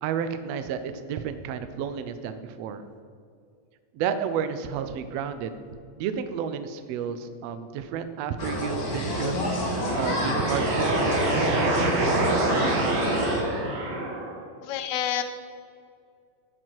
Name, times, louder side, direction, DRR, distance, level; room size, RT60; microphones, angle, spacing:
voice 1, 0.0-2.8 3.9-5.6 6.0-9.4 9.9-10.9, right 7 dB, 80° right, 9 dB, 1.5 m, -31 dB
sound 1, 8.4-13.4, left 1 dB, 40° left, 1.5 m, -29 dB
sound 2, 9.5-14.4, right 2 dB, 60° right, 2.6 m, -26 dB
voice 2, 14.6-15.2, left 10 dB, 75° left, 9 dB, 2.0 m, -28 dB
13.0 x 8.1 x 4.6 m, 2.3 s
omnidirectional pair, 3.7 m